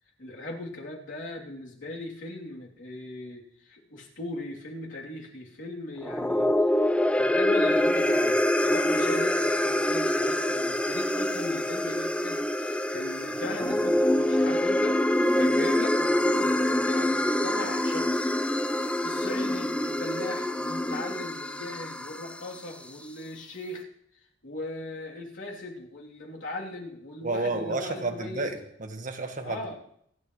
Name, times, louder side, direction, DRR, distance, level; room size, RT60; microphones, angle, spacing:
voice 1, 0.2-6.7 7.2-18.3 19.0-23.9 24.4-28.4 29.4-29.8, left 2 dB, 85° left, -3 dB, 3.2 m, -39 dB
sound 1, 6.0-22.5, left 1 dB, 5° left, 0.5 m, -25 dB
voice 2, 27.2-29.6, right 3 dB, 45° right, 5 dB, 1.6 m, -31 dB
27.0 x 11.0 x 3.2 m, 0.67 s
head